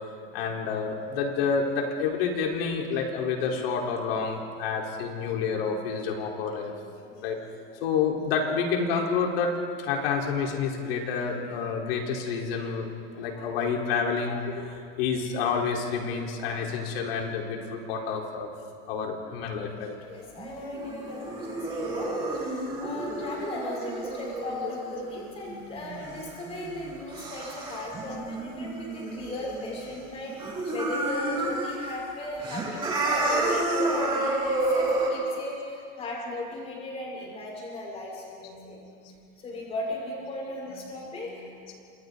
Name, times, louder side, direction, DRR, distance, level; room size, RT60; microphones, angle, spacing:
voice 1, 0.3-6.7 7.2-7.4 7.8-9.5 9.8-18.5 18.9-20.0 38.4-38.7 39.0-39.1 40.8-41.1 41.4-41.5, left 5 dB, 75° left, 0 dB, 4.3 m, -29 dB
voice 2, 20.1-38.8 39.4-41.4, left 1 dB, 20° left, -4 dB, 6.8 m, -37 dB
sound 1, 20.4-30.0 30.3-31.9 32.3-35.1, right 2 dB, 15° right, 3.9 m, -30 dB
30.0 x 27.0 x 4.1 m, 2.4 s
supercardioid pair, 170°, 30 cm